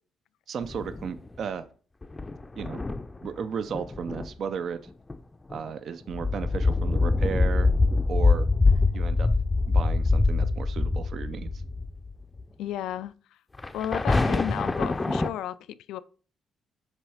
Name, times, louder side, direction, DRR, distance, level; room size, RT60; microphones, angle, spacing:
voice 1, 0.5-1.7 2.6-2.8 3.2-4.8 5.5-7.7 8.1-8.5 8.9-9.3 9.7-11.6, right 7 dB, 60° right, 0.4 m, -34 dB
sound 1, 0.6-1.3 2.0-3.3 3.7-4.3 4.9-5.2 5.5-5.7 6.1-12.1 12.4-12.5 13.6-15.3, left 3 dB, 20° left, 0.5 m, -24 dB
voice 2, 12.6-13.4 13.7-16.0, left 11 dB, 85° left, 0.3 m, -34 dB
7.4 x 3.1 x 4.8 m
cardioid pair, 90°, 0 cm